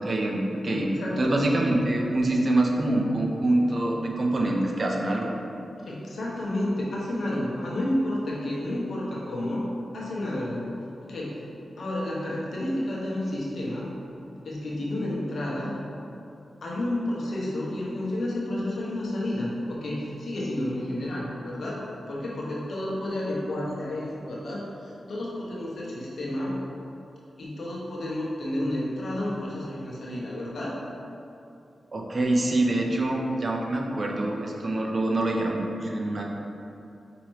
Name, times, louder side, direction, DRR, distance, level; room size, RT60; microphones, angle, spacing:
voice 1, 0.0-0.9 1.2-5.3 31.9-36.4, right 1 dB, 50° right, 0 dB, 0.6 m, -25 dB
voice 2, 0.7-1.3 5.9-9.6 9.9-10.7 11.0-11.4 11.8-13.9 14.4-16.0 16.6-21.8 22.1-26.6 27.4-30.8, left 1 dB, 70° left, -5 dB, 1.0 m, -31 dB
5.3 x 2.9 x 3.1 m, 2.7 s
cardioid pair, 55°, 0 cm